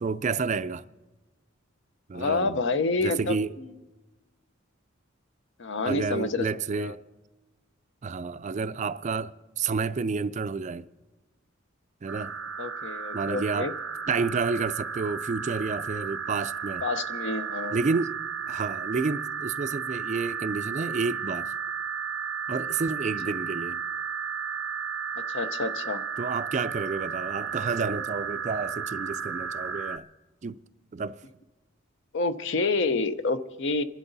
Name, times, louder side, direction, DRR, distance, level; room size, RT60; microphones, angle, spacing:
voice 1, 0.0-0.8 2.1-2.6 3.0-3.6 5.8-7.0 8.0-10.9 12.0-12.3 13.1-13.7 14.1-16.8 17.7-18.2 18.5-21.5 22.5-23.8 26.2-30.0 30.4-30.6 30.9-31.2, right 4 dB, 35° right, 0.4 m, -30 dB
voice 2, 2.1-3.7 5.6-6.5 6.8-6.9 12.6-13.7 16.8-17.8 25.3-26.0 32.1-33.8, left 3 dB, 60° left, 0.7 m, -28 dB
sound 1, 12.1-30.0, right 6 dB, 85° right, 0.7 m, -34 dB
28.0 x 11.5 x 4.0 m
head